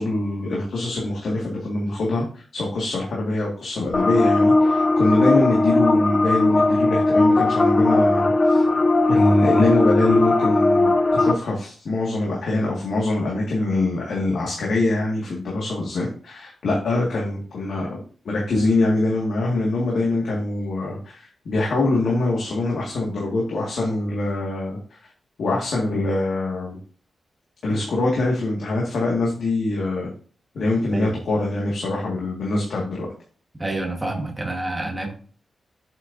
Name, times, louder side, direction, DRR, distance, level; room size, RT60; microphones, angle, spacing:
voice 1, 0.0-8.6 9.1-18.0 18.2-25.1 25.4-26.8 27.6-30.1 30.5-33.1, left 2 dB, 70° left, -3 dB, 1.9 m, -24 dB
sound 1, 3.9-11.3, left 2 dB, 30° left, 0.5 m, -18 dB
voice 2, 33.6-35.1, right 2 dB, 15° right, 1 dB, 1.5 m, -27 dB
7.8 x 6.4 x 2.7 m, 0.41 s
wide cardioid pair, 165°, 0 cm